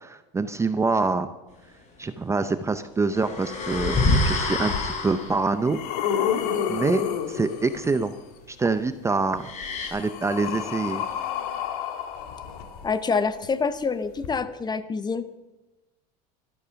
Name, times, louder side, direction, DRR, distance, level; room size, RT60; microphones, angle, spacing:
voice 1, 0.0-1.3 2.0-5.8 6.7-8.1 8.5-9.4 9.9-11.0, right 3 dB, 15° right, 10 dB, 0.6 m, -25 dB
sound 1, 3.1-5.5 9.4-9.9, left 2 dB, 40° left, 4.7 m, -26 dB
sound 2, 4.7-4.8 5.3-8.1 9.3-13.2 14.2-14.3, left 8 dB, 85° left, 1.8 m, -30 dB
voice 2, 12.8-15.3, left 5 dB, 20° left, 13 dB, 0.8 m, -26 dB
12.5 x 12.0 x 5.8 m, 1.1 s
supercardioid pair, 120°, 19 cm